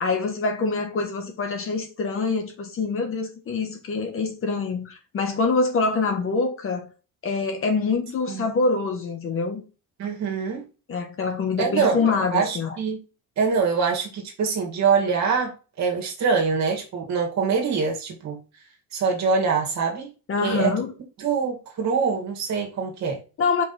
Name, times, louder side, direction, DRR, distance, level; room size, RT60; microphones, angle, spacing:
voice 1, 0.0-6.9 7.2-9.6 10.9-12.8 20.3-20.9 23.4-23.6, left 4 dB, 40° left, 1.5 m, -25 dB
voice 2, 10.0-10.6 11.6-12.0 12.3-13.0 13.4-18.4 18.9-20.1 20.4-20.7 21.2-23.2, right 5 dB, 50° right, 2.2 m, -24 dB
5.4 x 4.9 x 4.3 m
cardioid pair, 160°, 35 cm